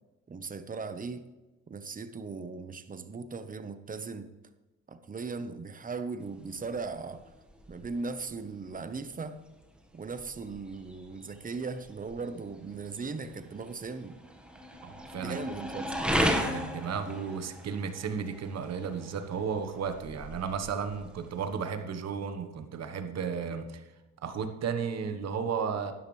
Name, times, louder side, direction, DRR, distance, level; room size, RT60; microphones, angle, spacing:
voice 1, 0.3-1.3 1.7-4.3 4.9-7.2 7.7-9.4 9.9-14.2 15.2-15.9, right 4 dB, 25° right, 10 dB, 1.0 m, -38 dB
sound 1, 6.2-21.7, equal, 5° right, 1.5 m, -37 dB
voice 2, 14.8-15.4 16.4-23.9 24.2-25.9, right 6 dB, 60° right, 7 dB, 1.2 m, -34 dB
12.5 x 10.5 x 3.3 m, 1.1 s
cardioid pair, 90°, 30 cm